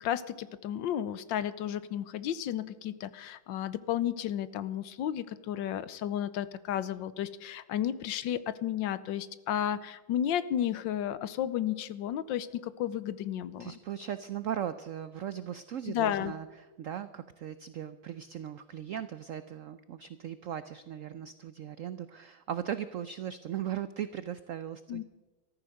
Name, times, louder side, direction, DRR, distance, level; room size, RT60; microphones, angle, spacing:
voice 1, 0.0-13.7 15.9-16.3 24.9-25.0, left 10 dB, 75° left, 15 dB, 1.4 m, -33 dB
voice 2, 13.6-25.0, right 10 dB, 80° right, 13 dB, 0.7 m, -38 dB
14.0 x 14.0 x 6.5 m, 1.2 s
omnidirectional pair, 2.1 m